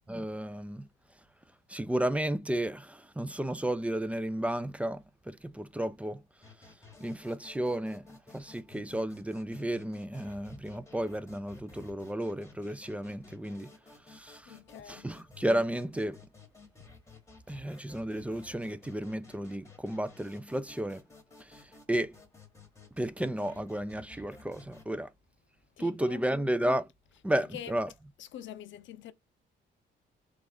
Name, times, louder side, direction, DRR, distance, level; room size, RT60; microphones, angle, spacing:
voice 1, 0.1-0.9 1.7-6.2 7.0-8.0 8.3-13.7 14.1-14.5 14.9-16.2 17.5-21.0 21.5-21.6 21.9-22.1 23.0-25.1 25.8-26.9 27.2-27.9, right 1 dB, 5° right, 0.3 m, -33 dB
sound 1, 6.4-24.8, left 4 dB, 15° left, 1.1 m, -55 dB
voice 2, 14.5-15.1 25.8-26.2 27.3-27.8 28.2-29.1, left 11 dB, 70° left, 0.5 m, -45 dB
3.3 x 2.4 x 3.5 m
cardioid pair, 90°, 20 cm